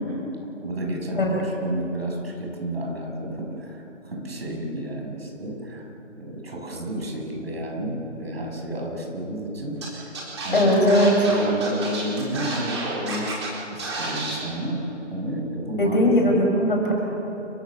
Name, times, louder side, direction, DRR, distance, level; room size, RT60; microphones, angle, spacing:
voice 1, 0.6-5.9 6.2-10.1 10.4-10.7 11.3-16.4, equal, 55° right, 0 dB, 6.9 m, -31 dB
Scratching (performance technique), 9.8-9.9 10.1-13.5 13.8-14.3, right 3 dB, 20° right, 4.2 m, -31 dB
voice 2, 10.5-11.1 15.8-16.9, left 1 dB, 45° left, 0 dB, 6.4 m, -19 dB
29.5 x 16.5 x 7.4 m, 3.0 s
hypercardioid pair, 180°, 38 cm